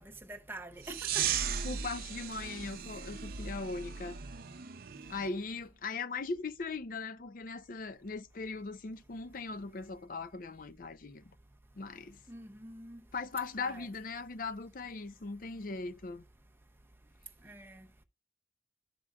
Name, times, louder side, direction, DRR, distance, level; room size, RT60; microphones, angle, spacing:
voice 1, 0.0-1.6 12.3-13.0 13.6-13.9 17.4-17.9, right 1 dB, 10° right, 0.6 m, -46 dB
sound 1, 0.8-5.3, right 8 dB, 50° right, 0.6 m, -37 dB
voice 2, 1.6-4.2 5.1-11.2 11.7-12.2 13.1-16.2, left 4 dB, 50° left, 0.5 m, -39 dB
12.0 x 4.9 x 2.3 m
head